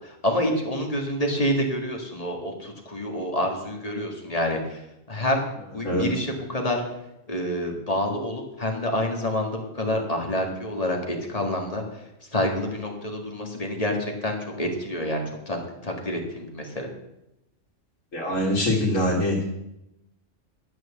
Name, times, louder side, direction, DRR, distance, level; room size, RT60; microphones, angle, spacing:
voice 1, 0.0-4.8 5.1-5.5 5.7-6.8 7.3-12.0 12.3-16.9, left 1 dB, 30° left, 2 dB, 2.0 m, -28 dB
voice 2, 18.1-19.4, left 1 dB, 85° left, -3 dB, 2.3 m, -23 dB
11.5 x 6.2 x 7.3 m, 0.86 s
omnidirectional pair, 1.3 m